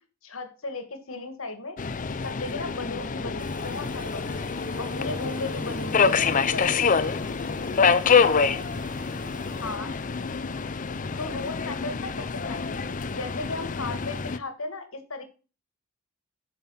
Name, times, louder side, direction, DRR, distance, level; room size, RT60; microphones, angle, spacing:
voice 1, 0.2-1.8 2.2-4.4 4.8-6.6 9.6-9.9 11.2-15.2, left 3 dB, 70° left, 9 dB, 1.8 m, -36 dB
Subway metro underground, 1.8-14.4, left 5 dB, 40° left, 0.5 m, -26 dB
sound 1, 3.4-9.8, right 1 dB, 20° right, 1.0 m, -48 dB
voice 2, 5.0-9.6, right 2 dB, 5° right, -2 dB, 3.8 m, -51 dB
8.9 x 5.8 x 5.5 m, 0.34 s
head